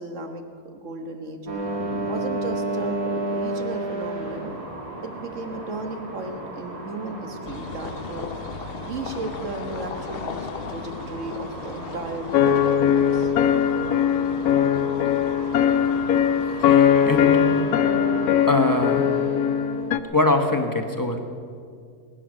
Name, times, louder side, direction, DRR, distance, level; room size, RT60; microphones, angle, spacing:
voice 1, 0.0-1.4 2.0-4.5 5.0-8.3 8.8-13.3, right 2 dB, 55° right, 5 dB, 1.7 m, -35 dB
sound 1, 1.5-19.9, right 2 dB, 85° right, 2.6 m, -33 dB
sound 2, 7.4-17.6, left 7 dB, 60° left, 0.6 m, -39 dB
sound 3, 12.3-20.0, left 9 dB, 80° left, 1.2 m, -20 dB
voice 2, 16.6-17.4 18.5-19.1 20.1-21.2, left 2 dB, 15° left, 5 dB, 1.0 m, -23 dB
21.0 x 10.5 x 6.4 m, 2.2 s
omnidirectional pair, 1.6 m